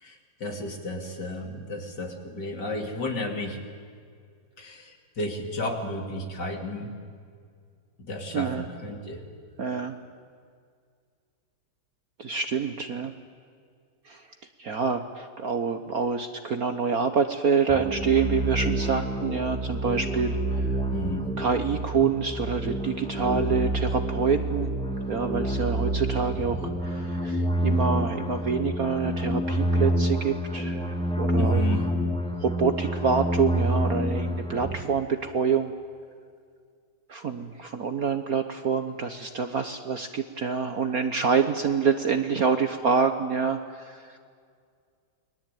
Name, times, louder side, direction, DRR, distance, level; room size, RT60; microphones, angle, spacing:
voice 1, 0.0-3.6 4.6-6.9 8.1-9.2 20.9-21.2 31.3-31.8, left 2 dB, 50° left, 4 dB, 3.4 m, -33 dB
voice 2, 8.3-8.6 9.6-9.9 12.2-13.1 14.1-14.2 14.6-20.7 21.4-24.7 25.1-31.8 32.4-35.7 37.1-44.2, right 5 dB, 50° right, 8 dB, 1.3 m, -27 dB
sound 1, 17.7-34.8, right 1 dB, 5° left, 2.0 m, -28 dB
29.5 x 22.0 x 9.2 m, 2.1 s
omnidirectional pair, 2.4 m